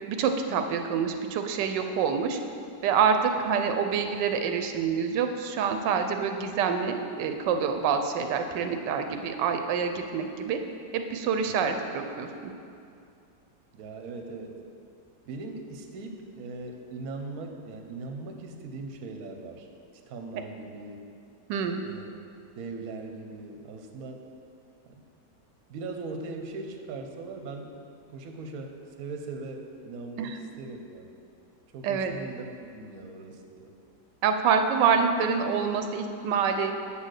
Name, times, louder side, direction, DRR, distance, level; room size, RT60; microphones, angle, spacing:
voice 1, 0.1-2.4 2.8-10.6 10.9-12.5 21.5-21.8 30.2-30.4 31.8-32.1 34.2-36.7, right 6 dB, 90° right, 6 dB, 1.2 m, -26 dB
voice 2, 13.7-14.6 15.3-19.7 20.1-21.0 21.8-22.1 22.6-24.3 24.8-25.1 25.7-27.7 28.1-31.1 31.7-33.7, right 3 dB, 65° right, 3 dB, 1.1 m, -40 dB
7.5 x 4.2 x 6.4 m, 2.5 s
omnidirectional pair, 1.8 m